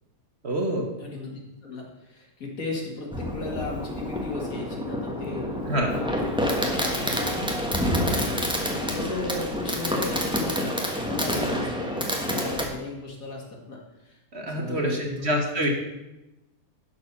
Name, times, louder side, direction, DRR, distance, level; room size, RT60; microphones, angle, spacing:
voice 1, 0.4-0.9 5.7-5.9 14.3-15.7, right 1 dB, 45° right, 2 dB, 1.3 m, -26 dB
voice 2, 1.0-6.1 6.5-15.4, left 3 dB, 60° left, -1 dB, 2.4 m, -36 dB
Fireworks, 3.1-12.7, equal, 5° right, 1.2 m, -28 dB
11.0 x 4.7 x 6.7 m, 0.98 s
omnidirectional pair, 1.7 m